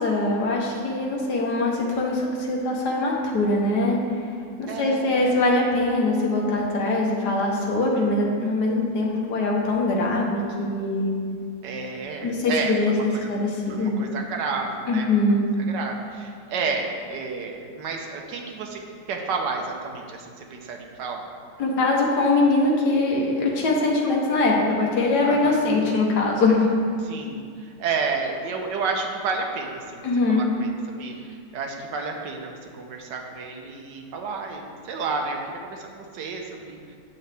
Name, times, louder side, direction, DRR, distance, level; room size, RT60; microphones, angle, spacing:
voice 1, 0.0-4.0 4.6-11.1 12.2-12.9 13.3-14.0 14.9-15.5 21.6-26.7 30.0-30.4, left 2 dB, 70° left, -2 dB, 1.7 m, -22 dB
voice 2, 4.7-5.4 11.6-13.3 13.7-18.8 19.1-21.3 25.2-25.7 27.0-30.7 31.0-36.8, right 4 dB, 90° right, 2 dB, 1.4 m, -31 dB
8.4 x 7.1 x 3.4 m, 2.2 s
omnidirectional pair, 1.8 m